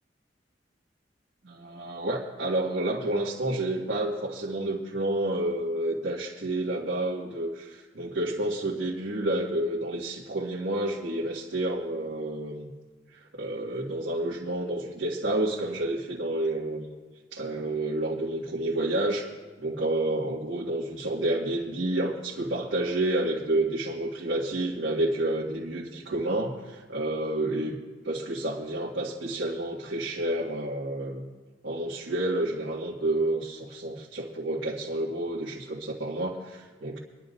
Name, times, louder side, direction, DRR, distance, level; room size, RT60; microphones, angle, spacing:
voice 1, 1.4-12.7 13.1-16.9 17.3-19.2 19.6-27.8 28.0-31.3 31.6-37.0, right 1 dB, 85° right, -6 dB, 1.7 m, -29 dB
25.5 x 11.0 x 2.5 m, 1.4 s
head